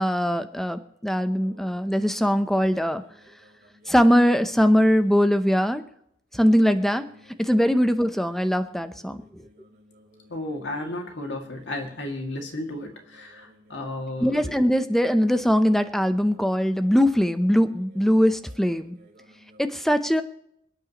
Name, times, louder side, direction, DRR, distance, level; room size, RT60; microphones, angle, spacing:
voice 1, 0.0-3.0 3.9-5.8 6.3-7.1 7.4-9.4 14.2-19.0 19.6-20.2, equal, ahead, 9 dB, 0.7 m, -21 dB
sound 1, 1.4-4.9 6.4-19.6, equal, 45° right, 4.6 m, -56 dB
voice 2, 10.3-14.6, left 1 dB, 65° left, 2 dB, 2.3 m, -33 dB
28.0 x 9.3 x 3.0 m, 0.75 s
head